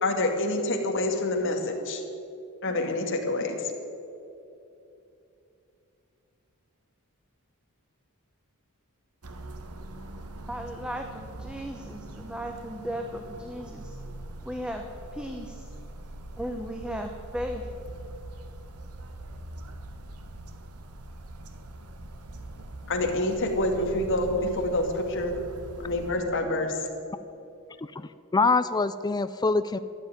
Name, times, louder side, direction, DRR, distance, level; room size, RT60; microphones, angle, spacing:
voice 1, 0.0-2.0 2.6-3.7 22.9-25.4 25.8-26.8, left 2 dB, 60° left, 2 dB, 2.2 m, -27 dB
sound 1, 9.2-26.1, right 1 dB, 85° right, 1.3 m, -42 dB
voice 2, 10.5-14.0 14.4-14.9 15.1-15.7 16.4-17.7, equal, 5° right, 4 dB, 0.9 m, -36 dB
voice 3, 27.8-29.8, left 3 dB, 20° left, 12 dB, 0.4 m, -25 dB
13.5 x 10.5 x 9.0 m, 2.8 s
head